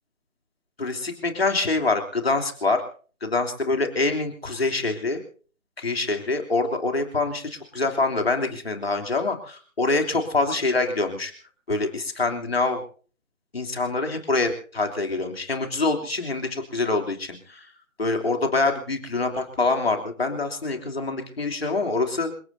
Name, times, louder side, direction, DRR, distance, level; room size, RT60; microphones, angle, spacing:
voice 1, 0.8-2.8 3.2-5.2 5.8-11.3 11.7-12.8 13.5-17.7 18.0-22.3, left 3 dB, 45° left, 4 dB, 3.3 m, -25 dB
28.0 x 17.0 x 2.8 m, 0.42 s
figure-of-eight pair, 170°, 41 cm